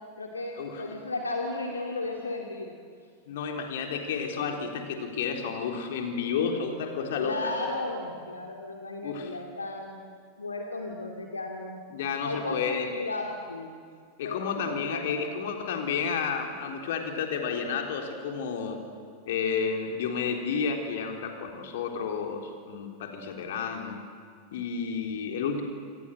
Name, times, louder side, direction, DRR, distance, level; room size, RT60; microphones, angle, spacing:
voice 1, 0.2-2.7 7.2-10.0 10.4-11.8 12.2-13.7 14.2-15.1, left 2 dB, 80° left, 2 dB, 2.6 m, -34 dB
voice 2, 3.3-7.5 9.0-9.3 11.9-12.9 14.2-18.8 19.3-24.0 24.5-25.6, left 6 dB, 55° left, 3 dB, 4.1 m, -31 dB
28.0 x 27.0 x 7.9 m, 2.1 s
figure-of-eight pair, 90°, 0 cm